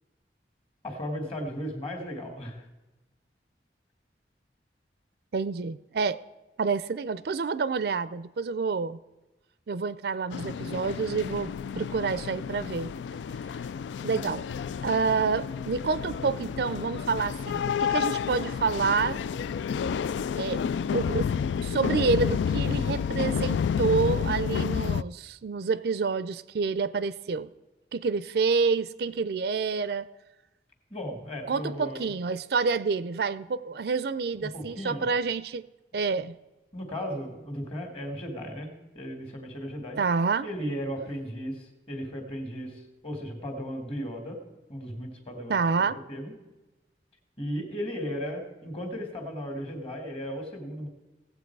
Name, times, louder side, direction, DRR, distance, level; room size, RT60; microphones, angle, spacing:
voice 1, 0.8-2.7 30.9-32.1 34.4-35.1 36.7-40.0 40.4-44.4 44.7-46.3 47.4-50.9, equal, 35° left, 4 dB, 2.1 m, -36 dB
voice 2, 5.3-6.2 6.6-9.0 9.7-12.9 14.0-14.4 14.8-19.2 20.4-20.6 20.9-21.3 21.6-27.5 27.9-30.1 31.5-35.6 35.9-36.4 40.0-40.5 45.5-46.0, right 4 dB, 65° right, 16 dB, 0.4 m, -28 dB
sound 1, 10.3-25.0, left 7 dB, 90° left, 0.3 m, -30 dB
17.5 x 7.9 x 4.6 m, 1.1 s
head